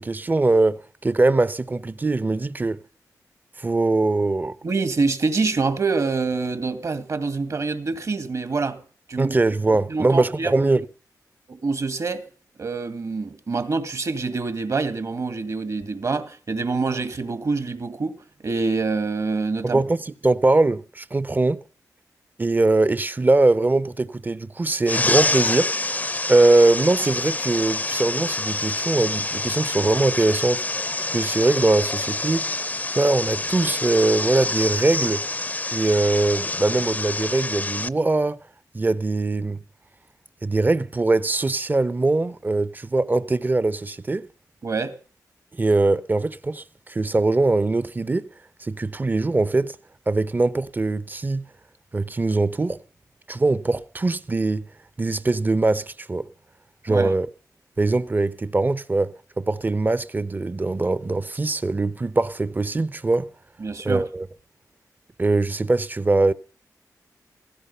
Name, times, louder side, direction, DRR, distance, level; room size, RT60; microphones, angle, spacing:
voice 1, 0.0-2.8 3.6-4.6 9.2-10.8 19.6-21.6 22.4-25.8 26.3-30.6 31.1-32.5 32.9-35.3 35.7-38.4 38.7-39.6 40.4-44.3 45.5-48.3 48.6-49.8 50.1-51.5 51.9-52.8 53.3-54.7 55.0-56.3 56.8-57.3 57.8-63.3 63.8-64.3 65.2-66.3, right 2 dB, 30° right, 0.8 m, -22 dB
voice 2, 4.6-8.8 9.1-9.3 9.9-10.7 11.5-12.2 12.6-18.1 18.4-19.8 44.6-44.9 56.9-57.1 63.6-64.1, right 4 dB, 55° right, 2.0 m, -26 dB
sound 1, 24.9-37.9, left 2 dB, 25° left, 0.7 m, -27 dB
16.0 x 15.5 x 5.6 m
cardioid pair, 75°, 7 cm